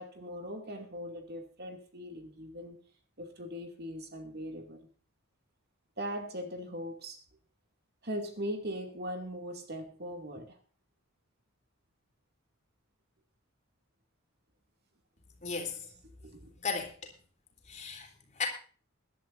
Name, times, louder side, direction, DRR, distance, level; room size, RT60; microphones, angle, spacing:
voice 1, 0.0-2.8 3.2-4.9 6.0-7.2 8.0-10.6 16.2-16.5, equal, 50° right, 2.5 m, -40 dB
voice 2, 15.4-15.8 16.4-17.1 17.7-18.1 18.4-18.5, left 5 dB, 35° left, 3.5 m, -36 dB
22.5 x 11.5 x 2.6 m
head